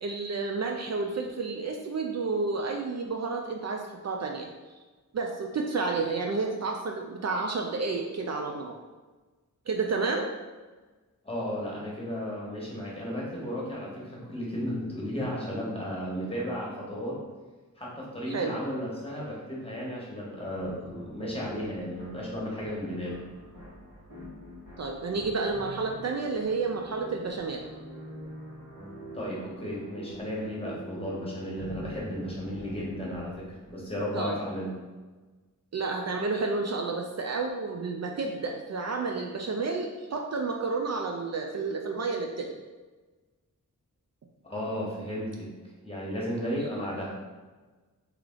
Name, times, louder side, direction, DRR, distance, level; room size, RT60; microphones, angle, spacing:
voice 1, 0.0-4.5 5.1-8.7 9.7-10.3 18.3-18.5 24.8-27.6 34.1-34.4 35.7-42.6 46.7-46.8, right 4 dB, 50° right, 1 dB, 0.4 m, -30 dB
voice 2, 11.2-17.2 17.8-23.2 29.1-34.7 44.4-45.5 45.8-47.1, equal, 15° left, -5 dB, 1.2 m, -34 dB
sound 1, 20.6-34.2, equal, 90° right, 1.4 m, -45 dB
3.3 x 3.0 x 3.7 m, 1.3 s
wide cardioid pair, 90°, 33 cm